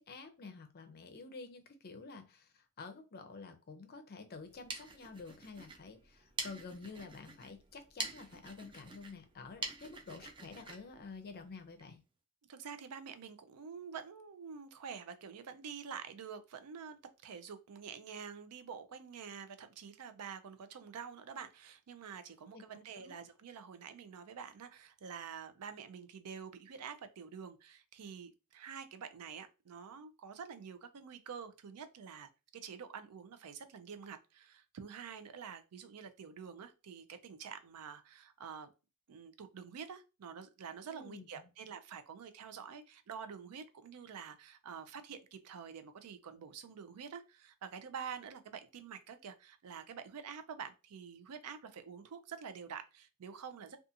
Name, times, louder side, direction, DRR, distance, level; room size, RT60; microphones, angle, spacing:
voice 1, 0.0-12.0 22.5-22.6 23.0-23.1 40.9-41.5, left 4 dB, 45° left, 0.5 m, -50 dB
sound 1, 4.4-11.9, right 3 dB, 20° right, 0.4 m, -46 dB
voice 2, 12.5-17.0 17.2-38.7 39.1-53.8, right 6 dB, 80° right, 0.4 m, -47 dB
2.5 x 2.4 x 2.7 m
head